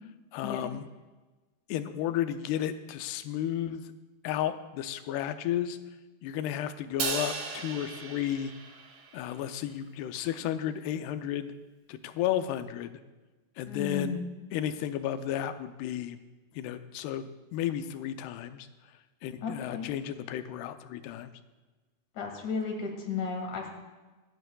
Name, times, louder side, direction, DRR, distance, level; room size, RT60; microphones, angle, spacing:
voice 1, 0.3-0.9 1.7-3.8 4.2-5.8 6.2-8.5 9.1-11.5 11.9-13.0 13.6-14.2 14.5-16.2 16.5-18.7 19.2-21.3, left 11 dB, 90° left, 9 dB, 2.7 m, -33 dB
Crash cymbal, 7.0-9.4, right 5 dB, 80° right, 1.3 m, -36 dB
voice 2, 13.7-14.2 19.4-19.9 22.1-23.7, left 5 dB, 55° left, 1 dB, 3.0 m, -34 dB
25.5 x 10.0 x 2.3 m, 1.2 s
omnidirectional pair, 4.5 m